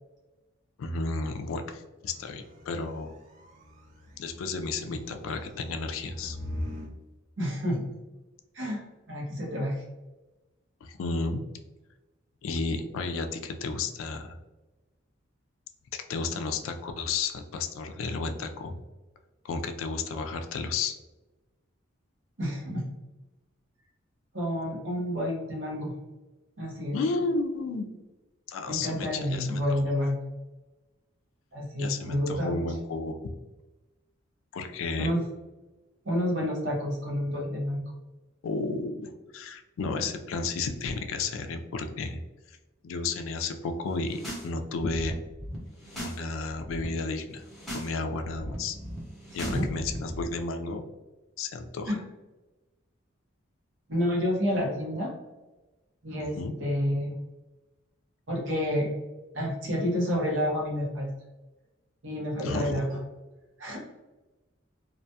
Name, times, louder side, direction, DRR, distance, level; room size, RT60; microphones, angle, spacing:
voice 1, 0.8-3.1 4.2-6.4 10.8-11.4 12.4-14.4 16.1-18.8 19.5-20.9 26.9-27.9 28.5-29.9 31.8-33.2 34.5-35.1 38.4-42.2 42.8-45.2 46.0-47.4 47.7-48.8 49.3-50.8 51.4-51.9 56.4-56.6 62.4-62.8, left 3 dB, 80° left, 6 dB, 0.3 m, -32 dB
sound 1, 2.0-6.9, left 1 dB, 35° right, 0.5 m, -42 dB
voice 2, 7.4-7.8 8.5-9.8 22.4-22.8 24.3-25.9 26.6-27.0 28.6-30.2 31.5-32.6 35.0-35.2 36.0-37.9 49.4-49.7 51.9-52.0 53.9-55.1 56.0-57.1 58.3-59.0 59.3-61.1 62.0-63.0 63.6-63.8, equal, 65° right, -2 dB, 0.8 m, -29 dB
sound 2, 43.9-44.5 44.8-46.2 46.5-46.9 47.3-47.9 48.2-50.2, equal, ahead, 0.7 m, -39 dB
2.4 x 2.2 x 2.6 m, 1.1 s
head